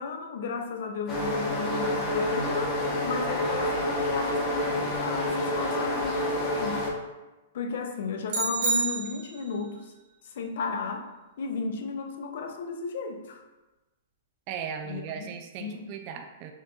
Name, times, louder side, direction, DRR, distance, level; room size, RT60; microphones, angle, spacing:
voice 1, 0.0-6.9 7.5-9.9 10.2-11.1 11.4-13.4 14.8-15.3 15.6-15.8, left 4 dB, 60° left, 5 dB, 0.5 m, -34 dB
sound 1, 1.1-6.9, left 1 dB, 25° left, 0.8 m, -28 dB
sound 2, 8.3-9.6, right 3 dB, 60° right, 0.8 m, -29 dB
voice 2, 14.5-16.5, right 7 dB, 35° right, 5 dB, 0.3 m, -37 dB
4.4 x 2.9 x 2.4 m, 1.1 s
hypercardioid pair, 155°, 0 cm